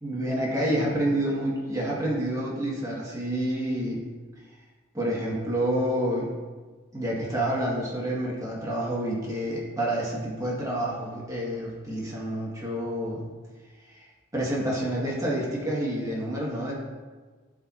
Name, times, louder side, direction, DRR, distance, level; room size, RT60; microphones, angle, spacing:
voice 1, 0.0-4.0 4.9-6.3 6.9-13.2 13.9-14.0 14.3-16.7, right 1 dB, 15° right, -5 dB, 1.3 m, -28 dB
12.0 x 4.3 x 2.4 m, 1.4 s
head